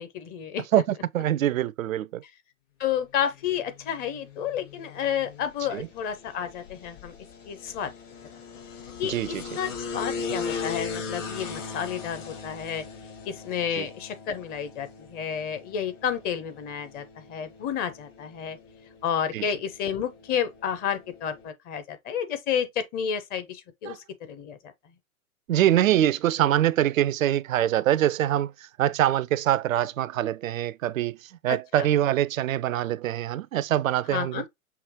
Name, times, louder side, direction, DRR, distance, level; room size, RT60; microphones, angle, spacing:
voice 1, 0.0-0.8 2.8-7.1 7.5-7.9 9.0-9.2 9.6-12.8 13.3-18.6 19.0-24.6 31.5-31.9 34.1-34.4, left 8 dB, 20° left, 0.6 m, -31 dB
voice 2, 0.7-2.2 5.7-5.9 9.0-9.4 13.8-13.9 19.3-19.5 23.9-24.0 25.5-28.5 28.8-31.2 31.4-34.5, right 12 dB, 65° right, 0.5 m, -24 dB
sound 1, 3.4-21.5, left 5 dB, 60° left, 2.3 m, -39 dB
5.8 x 2.9 x 2.9 m
figure-of-eight pair, 110°, 43 cm